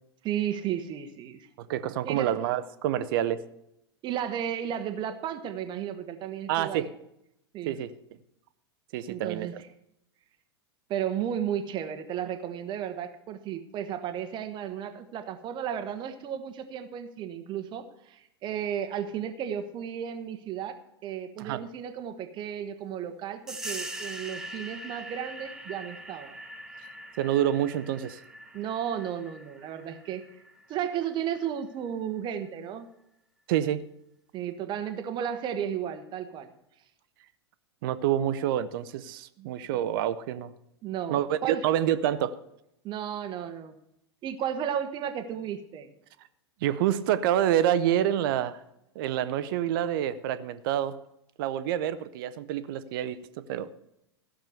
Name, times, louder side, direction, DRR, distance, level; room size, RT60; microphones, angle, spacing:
voice 1, 0.2-1.5 2.0-2.3 4.0-6.9 7.5-7.7 9.1-9.5 10.9-26.4 28.5-30.2 30.7-32.9 34.3-36.5 39.4-39.5 40.8-41.6 42.8-43.7 44.2-45.9, right 9 dB, 35° right, 9 dB, 1.0 m, -34 dB
voice 2, 1.6-3.4 6.5-6.9 7.7-7.9 8.9-9.5 21.4-21.6 27.2-28.2 33.5-33.8 37.8-40.5 41.1-42.3 46.6-48.6 49.0-50.9 51.4-53.7, right 11 dB, 50° right, 13 dB, 0.7 m, -27 dB
sound 1, 23.5-31.8, right 1 dB, 5° right, 1.0 m, -42 dB
15.0 x 6.3 x 6.8 m, 0.82 s
figure-of-eight pair, 95°, 14 cm